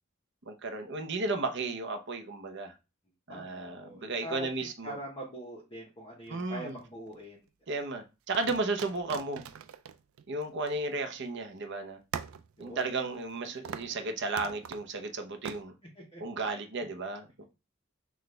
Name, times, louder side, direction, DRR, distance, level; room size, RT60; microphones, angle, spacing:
voice 1, 0.5-2.7 3.3-5.0 6.3-6.8 7.7-9.4 10.3-12.0 12.6-15.7 16.2-17.4, right 3 dB, 60° right, 0.8 m, -34 dB
voice 2, 3.3-7.4 12.6-13.0 15.9-16.2 16.5-16.6, equal, 25° left, 1.0 m, -43 dB
sound 1, 6.3-7.2 8.3-11.3 11.6-11.7 12.1-13.4 13.6-14.0 14.4-14.9 15.5-15.6, right 7 dB, 80° right, 0.4 m, -42 dB
6.0 x 2.5 x 3.3 m
head